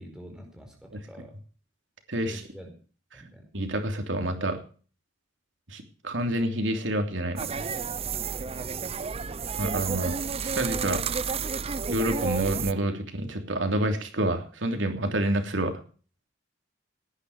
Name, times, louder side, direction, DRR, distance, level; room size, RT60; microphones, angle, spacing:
voice 1, 0.0-1.3 2.2-2.7 3.1-3.4 8.8-9.5, equal, 5° right, 2 dB, 4.8 m, -46 dB
voice 2, 2.1-2.4 3.1-3.2 3.5-4.6 5.7-7.7 9.6-10.1 10.4-11.0 11.9-15.7, right 1 dB, 90° right, 5 dB, 3.1 m, -28 dB
sound 1, 7.4-12.7, right 5 dB, 35° right, 0.6 m, -31 dB
18.0 x 10.0 x 4.9 m, 0.39 s
head